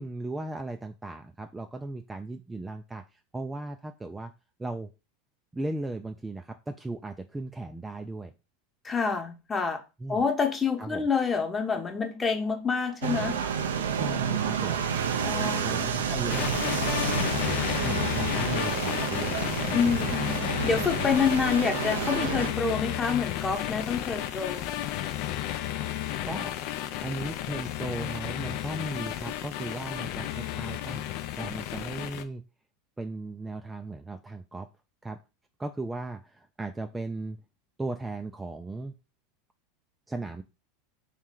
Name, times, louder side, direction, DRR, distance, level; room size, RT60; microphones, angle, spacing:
voice 1, 0.0-4.3 4.6-4.9 5.5-8.3 10.0-10.2 10.8-11.1 13.9-14.8 15.2-17.5 17.8-19.4 19.6-20.1 26.2-26.5 27.0-31.0 31.4-32.4 33.0-34.7 35.0-35.2 35.6-37.4 37.8-38.9 40.1-40.4, right 2 dB, 10° right, 6 dB, 0.4 m, -37 dB
voice 2, 8.8-9.8 10.1-13.4 15.2-15.6 19.7-24.7, left 5 dB, 20° left, 4 dB, 1.0 m, -27 dB
sound 1, 13.0-22.5, right 7 dB, 90° right, 0.5 m, -30 dB
sound 2, 16.3-32.2, left 12 dB, 60° left, 0.5 m, -32 dB
3.1 x 3.1 x 3.7 m, 0.28 s
hypercardioid pair, 100°, 0 cm